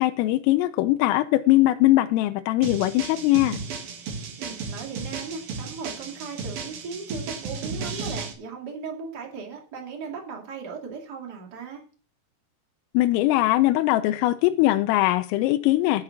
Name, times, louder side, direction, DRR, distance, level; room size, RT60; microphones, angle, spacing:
voice 1, 0.0-3.6 12.9-16.0, left 16 dB, 85° left, 8 dB, 3.3 m, -21 dB
sound 1, 2.6-8.3, right 5 dB, 60° right, 2.9 m, -34 dB
voice 2, 4.4-11.8, right 5 dB, 30° right, 0 dB, 1.8 m, -37 dB
12.0 x 6.5 x 5.8 m, 0.39 s
omnidirectional pair, 5.9 m